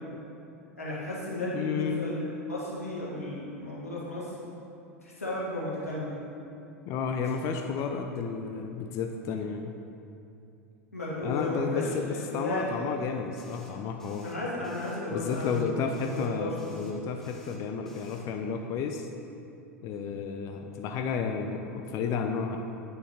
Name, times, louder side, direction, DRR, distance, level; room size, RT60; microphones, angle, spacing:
voice 1, 0.8-4.5 5.0-6.1 10.9-12.9 14.2-15.6 15.9-16.7, left 1 dB, 85° left, -6 dB, 1.6 m, -34 dB
voice 2, 1.5-2.1 6.9-9.7 11.2-14.3 15.1-19.1 19.8-22.6, left 6 dB, 40° left, 4 dB, 0.5 m, -32 dB
sound 1, 13.4-13.7 14.0-14.3 14.6-15.0 15.3-15.6 15.9-16.3 16.6-16.9 17.2-17.6 17.9-18.2, left 2 dB, 5° left, 1.0 m, -55 dB
8.6 x 6.7 x 2.9 m, 2.7 s
figure-of-eight pair, 85°, 8 cm